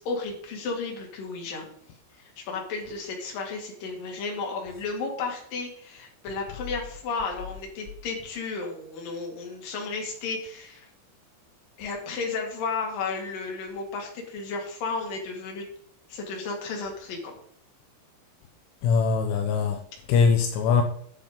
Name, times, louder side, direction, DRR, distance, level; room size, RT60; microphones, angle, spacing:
voice 1, 0.0-1.7 2.2-10.9 11.8-15.6 16.1-17.3, left 4 dB, 50° left, 3.9 m, -33 dB
voice 2, 18.8-19.8 20.1-20.8, left 5 dB, 80° left, 3.3 m, -21 dB
10.5 x 7.1 x 5.3 m
omnidirectional pair, 5.8 m